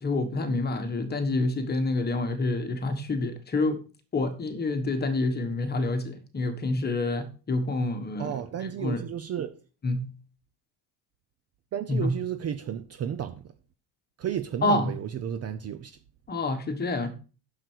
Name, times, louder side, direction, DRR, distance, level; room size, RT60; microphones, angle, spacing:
voice 1, 0.0-3.8 4.1-8.3 8.8-9.0 9.8-10.1 11.9-12.1 14.6-14.9 16.3-17.1, left 2 dB, 20° left, 1.3 m, -27 dB
voice 2, 8.2-9.5 11.7-13.4 14.2-16.0, right 9 dB, 30° right, 0.6 m, -32 dB
9.9 x 6.9 x 4.6 m
cardioid pair, 165°, 48 cm